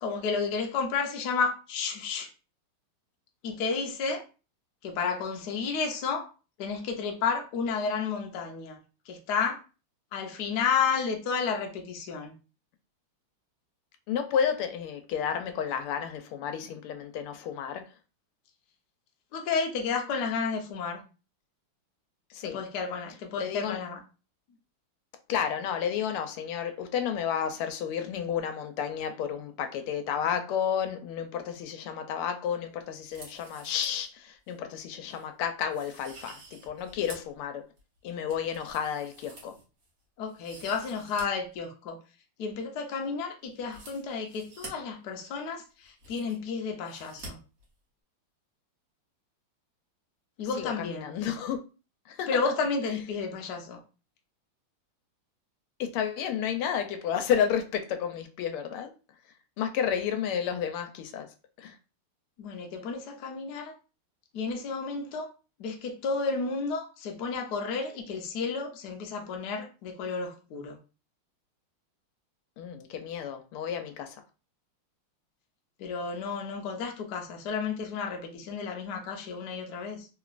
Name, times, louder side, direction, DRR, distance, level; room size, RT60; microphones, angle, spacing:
voice 1, 0.0-2.3 3.4-4.2 4.8-6.3 6.6-8.8 9.1-9.6 10.1-12.3 19.3-21.0 22.4-24.0 40.2-42.0 42.4-47.4 50.4-51.1 52.3-53.8 62.4-63.7 64.3-65.3 65.6-70.8 75.8-80.1, left 5 dB, 65° left, 1.0 m, -31 dB
voice 2, 14.1-17.9 22.3-22.6 23.4-23.8 25.3-37.7 38.0-39.5 50.6-51.6 52.1-52.5 55.8-58.9 59.6-61.8 72.6-74.2, left 8 dB, 85° left, 1.5 m, -31 dB
sound 1, 33.0-34.1 34.5-34.6 35.1-35.3 35.7-37.4 37.8-39.9 40.3-41.2 41.5-41.6 43.6-44.7 45.5-45.6 45.8-46.5 46.8-47.3 47.6-47.7, right 2 dB, 50° right, 1.3 m, -48 dB
3.6 x 2.9 x 2.4 m
omnidirectional pair, 2.4 m